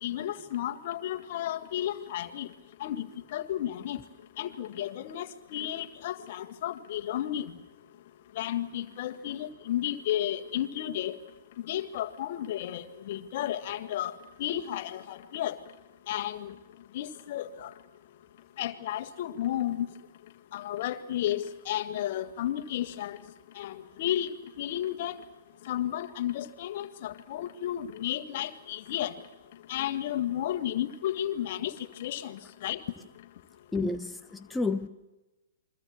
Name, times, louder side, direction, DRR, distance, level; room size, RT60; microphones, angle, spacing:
voice 1, 0.0-2.5 2.8-3.1 3.3-4.0 4.4-7.5 8.4-11.2 11.7-14.1 14.4-15.6 16.1-16.5 16.9-17.7 18.6-19.9 20.5-23.2 23.6-24.3 24.6-25.2 25.7-29.1 29.7-31.7 32.0-32.8, left 12 dB, 50° left, 9 dB, 1.8 m, -32 dB
voice 2, 33.7-34.9, left 3 dB, 5° left, 7 dB, 1.0 m, -30 dB
29.0 x 23.5 x 7.3 m, 1.1 s
figure-of-eight pair, 115°, 0 cm